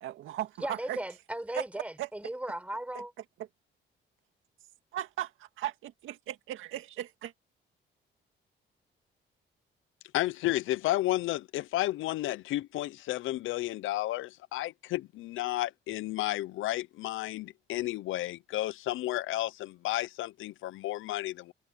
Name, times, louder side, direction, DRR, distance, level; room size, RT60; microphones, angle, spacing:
voice 1, 0.0-1.0 1.5-1.6 2.0-2.1 2.9-3.0 4.9-7.3, right 13 dB, 85° right, 2.0 m, -37 dB
voice 2, 0.6-3.1, right 1 dB, 5° right, 6.5 m, -36 dB
voice 3, 10.1-21.5, left 16 dB, 85° left, 0.6 m, -32 dB
cardioid pair, 90°, 20 cm